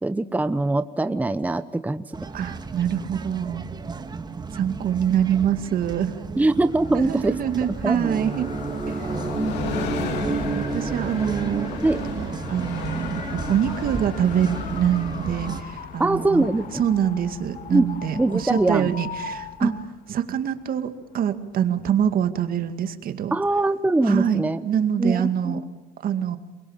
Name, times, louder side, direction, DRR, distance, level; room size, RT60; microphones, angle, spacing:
voice 1, 0.0-2.2 6.4-7.4 7.8-8.0 11.8-12.0 16.0-16.8 17.7-17.9 18.2-18.9 19.6-19.8 23.3-24.6 25.0-25.7, right 2 dB, 10° right, 12 dB, 0.8 m, -22 dB
sound 1, 2.1-15.6, right 4 dB, 25° right, 1.8 m, -32 dB
voice 2, 2.3-3.6 4.5-6.1 6.9-8.5 8.9-9.1 10.6-11.8 12.2-16.5 16.7-19.7 20.1-23.4 24.0-25.6 26.0-26.4, right 9 dB, 60° right, 9 dB, 2.2 m, -25 dB
Train, 6.5-19.8 20.1-20.2, left 7 dB, 85° left, 2.7 m, -37 dB
sound 2, 7.7-19.9, left 6 dB, 50° left, 2.4 m, -40 dB
28.5 x 23.0 x 7.4 m, 1.0 s
cardioid pair, 110°, 17 cm